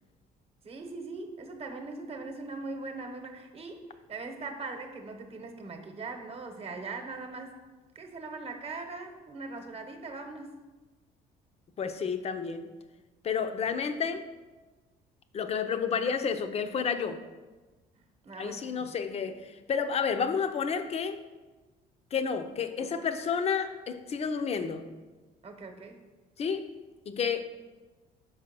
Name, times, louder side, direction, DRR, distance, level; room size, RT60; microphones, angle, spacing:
voice 1, 0.6-3.8 4.1-7.6 7.9-10.6 18.2-18.9 25.4-26.0, right 3 dB, 35° right, 5 dB, 1.1 m, -40 dB
voice 2, 11.8-12.7 13.2-14.3 15.3-17.2 18.4-21.2 22.1-24.9 26.4-26.7 27.1-27.4, left 6 dB, 40° left, 9 dB, 0.6 m, -30 dB
5.6 x 4.8 x 6.0 m, 1.2 s
cardioid pair, 110°, 17 cm